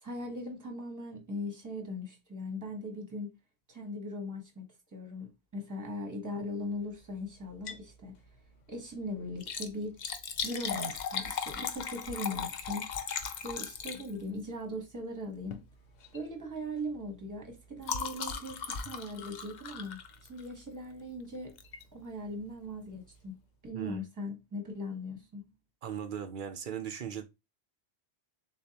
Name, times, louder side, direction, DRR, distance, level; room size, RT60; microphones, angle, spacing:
voice 1, 0.0-3.3 3.7-4.6 4.9-8.1 8.7-10.0 10.4-12.9 13.4-15.6 16.1-20.0 20.3-21.5 21.9-23.3 23.6-25.4, left 1 dB, 20° right, 1.0 m, -39 dB
Liquid, 7.5-7.9 8.3-8.4 9.3-14.4 15.4-15.7 16.0-16.3 16.6-20.6 21.6-21.8 22.4-22.5 22.7-22.8, left 6 dB, 55° left, 0.6 m, -38 dB
voice 2, 23.7-24.1 25.8-27.2, right 8 dB, 60° right, 0.6 m, -38 dB
6.6 x 2.3 x 2.8 m
omnidirectional pair, 1.1 m